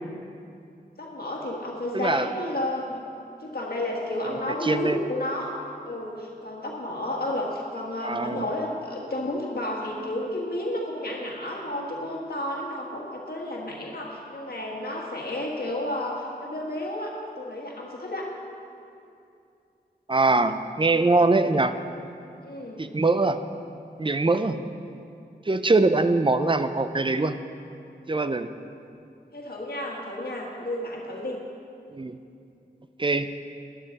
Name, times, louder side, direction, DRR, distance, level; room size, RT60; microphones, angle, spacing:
voice 1, 1.0-3.0 3.4-5.6 5.8-18.3 22.4-22.9 29.3-31.4, left 1 dB, 65° left, -2 dB, 1.6 m, -31 dB
voice 2, 1.9-2.3 4.3-4.4 4.6-5.0 8.0-8.5 20.1-21.7 22.8-23.4 24.0-24.6 25.5-27.4 28.1-28.5 31.9-32.2 33.0-33.3, right 3 dB, 30° right, 10 dB, 0.5 m, -22 dB
13.0 x 11.5 x 4.1 m, 2.6 s
wide cardioid pair, 65°, 17 cm